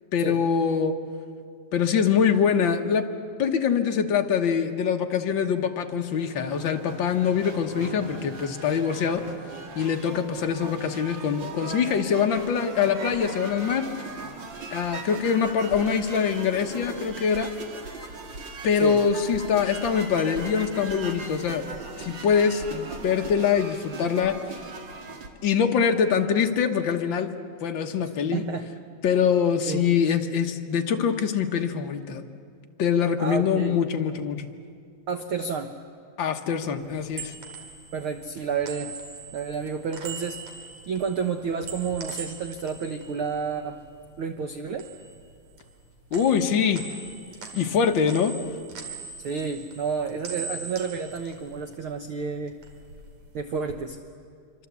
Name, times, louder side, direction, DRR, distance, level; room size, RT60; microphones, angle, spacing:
voice 1, 0.1-0.9 1.7-3.1 3.4-9.2 9.7-13.9 14.7-17.5 18.6-21.6 22.0-24.4 25.4-27.3 27.6-28.4 29.0-32.2 32.8-34.5 36.2-37.3 46.1-46.8 47.5-48.3, left 7 dB, 60° left, 5 dB, 1.3 m, -24 dB
sound 1, 5.9-25.3, right 3 dB, 40° right, 2.2 m, -39 dB
voice 2, 28.3-28.7 29.7-29.8 33.2-33.8 35.1-35.7 37.9-38.9 39.3-40.4 40.9-43.8 44.2-44.9 49.2-52.6 53.3-54.0, right 5 dB, 75° right, 7 dB, 1.2 m, -30 dB
sound 2, 36.8-44.1 44.4-45.8 46.1-52.1 52.4-53.8, right 5 dB, 55° right, 3.7 m, -42 dB
26.5 x 25.0 x 8.3 m, 2.3 s
omnidirectional pair, 3.8 m